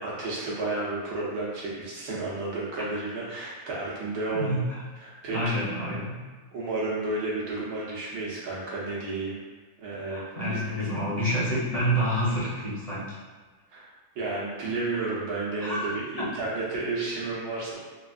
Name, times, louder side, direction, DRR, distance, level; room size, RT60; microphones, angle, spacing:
voice 1, 0.0-4.6 5.0-5.7 6.5-9.4 9.8-10.2 10.5-10.6 13.7-17.7, right 3 dB, 85° right, -5 dB, 1.4 m, -32 dB
voice 2, 4.3-4.8 5.3-6.1 10.1-13.1 15.6-16.3, equal, 35° left, -8 dB, 0.6 m, -28 dB
3.8 x 2.3 x 2.5 m, 1.4 s
omnidirectional pair, 1.7 m